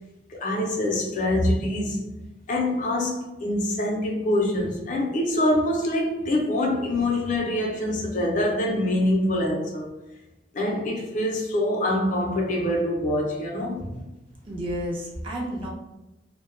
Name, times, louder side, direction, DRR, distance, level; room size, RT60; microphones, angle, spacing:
voice 1, 0.3-2.0 2.5-9.9 10.5-14.0, left 1 dB, 45° left, -1 dB, 0.5 m, -25 dB
voice 2, 14.4-15.7, equal, 30° right, -3 dB, 0.5 m, -31 dB
2.0 x 2.0 x 3.1 m, 0.99 s
head